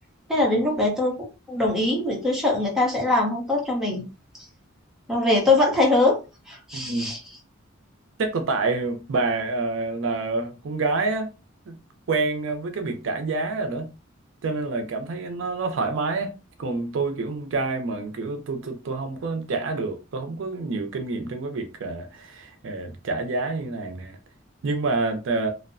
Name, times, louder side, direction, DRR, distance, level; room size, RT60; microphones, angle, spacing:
voice 1, 0.3-4.1 5.1-6.2 6.5-7.2, left 2 dB, ahead, 0.7 m, -22 dB
voice 2, 6.7-7.1 8.2-11.3 11.7-11.8 12.1-13.9 14.4-16.3 16.6-24.2 24.6-25.5, right 3 dB, 65° right, 0.4 m, -27 dB
2.6 x 2.1 x 2.5 m
head